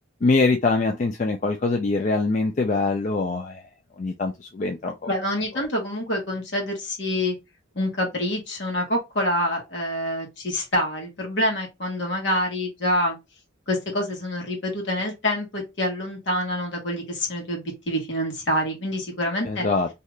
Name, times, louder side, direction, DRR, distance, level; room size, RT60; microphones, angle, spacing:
voice 1, 0.2-3.6 4.0-4.9 19.5-19.9, left 3 dB, 40° left, 0.3 m, -23 dB
voice 2, 5.1-7.4 7.7-13.2 13.7-19.7, left 1 dB, 65° left, 1.3 m, -26 dB
2.7 x 2.4 x 3.1 m
head